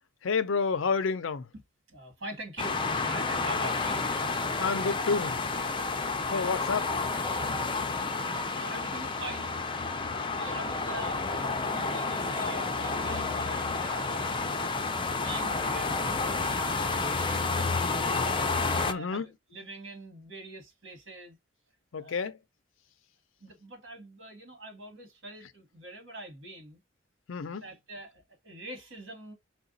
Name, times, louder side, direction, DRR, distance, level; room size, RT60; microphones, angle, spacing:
voice 1, 0.2-1.5 4.6-5.4 6.3-6.9 18.1-18.2 18.9-19.2 21.9-22.4 27.3-27.6, left 5 dB, 75° left, 0.5 m, -29 dB
voice 2, 1.9-4.1 6.4-6.7 8.1-9.6 9.8-14.1 14.5-14.7 15.1-18.2 18.6-21.4 22.0-22.3 23.4-26.8 27.6-29.3, right 2 dB, 70° right, 1.8 m, -44 dB
sound 1, 2.6-18.9, left 3 dB, 25° left, 0.5 m, -30 dB
4.8 x 2.2 x 3.9 m
head